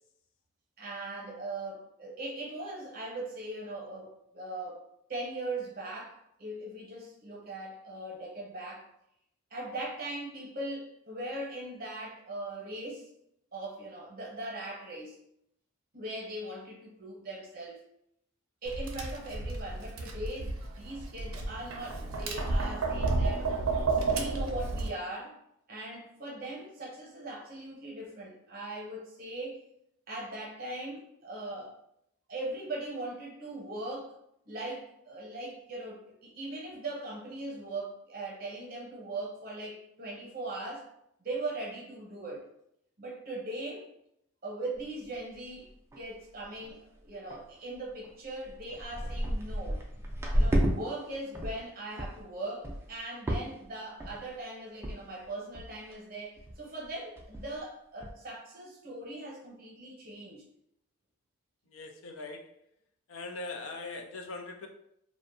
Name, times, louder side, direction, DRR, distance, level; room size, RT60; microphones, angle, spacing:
voice 1, 0.8-4.8 5.1-8.9 9.5-13.1 13.5-15.2 15.9-17.8 18.6-23.5 24.1-25.4 25.7-29.6 30.1-31.7 32.3-34.1 34.5-40.9 41.2-42.4 43.0-43.9 44.4-49.8 50.3-60.4, right 2 dB, 45° right, -3 dB, 0.7 m, -40 dB
Tap, 18.6-24.9, right 3 dB, 85° right, 0.5 m, -31 dB
sound 1, 44.8-44.9 45.3-45.4 45.7-46.1 46.4-46.7 47.3-47.4 48.0-48.1 48.4-50.8 51.1-51.6 52.0-52.2 52.6-52.9 53.3-53.7 54.0-54.4 54.8-55.0 55.2-55.3 55.5-55.9 56.4-56.6 56.8-56.9 57.2-57.6 58.0-58.1, equal, 10° right, 0.3 m, -31 dB
voice 2, 61.7-62.6 63.1-64.7, left 3 dB, 75° left, 4 dB, 0.4 m, -41 dB
2.6 x 2.1 x 2.5 m, 0.77 s
head